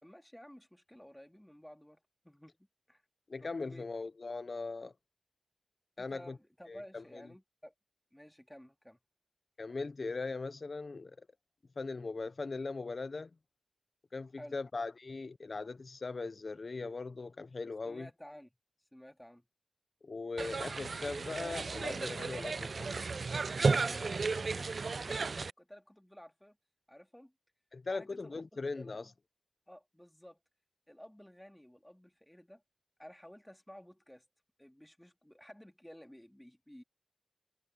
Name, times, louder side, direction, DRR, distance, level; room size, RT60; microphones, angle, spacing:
voice 1, 0.0-3.0 3.4-3.9 6.0-7.7 8.1-9.0 14.4-14.6 17.8-18.5 18.9-19.4 23.6-26.6 26.9-27.3 27.9-29.1 29.7-30.4 30.9-32.6 33.0-34.2 34.6-36.8, equal, 10° left, 2.8 m, -54 dB
voice 2, 3.3-4.9 6.0-6.4 6.7-7.2 9.6-11.3 11.8-13.3 14.1-18.1 20.0-23.2 27.7-29.1, left 3 dB, 60° left, 0.6 m, -40 dB
sound 1, 20.4-25.5, right 4 dB, 70° right, 0.4 m, -34 dB
cardioid pair, 50°, 0 cm